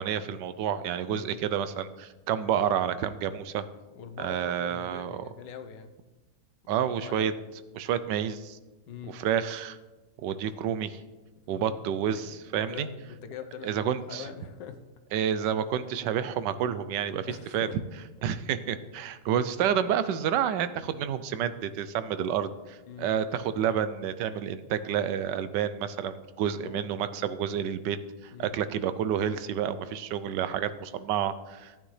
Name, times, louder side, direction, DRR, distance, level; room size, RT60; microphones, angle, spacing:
voice 1, 0.0-3.6 4.2-5.1 6.7-7.3 7.7-8.6 9.1-9.8 10.2-11.0 11.5-12.9 13.6-14.3 15.1-17.7 18.2-28.0 28.2-31.7, right 9 dB, 85° right, 13 dB, 1.2 m, -29 dB
voice 2, 3.9-6.0 6.6-7.4 8.9-9.2 11.4-12.0 12.3-12.4 12.7-14.8 17.2-17.8 18.5-18.7 22.9-23.2 26.6-26.9 28.3-28.6, left 7 dB, 80° left, 8 dB, 1.5 m, -44 dB
14.0 x 8.9 x 3.2 m, 1.1 s
omnidirectional pair, 1.9 m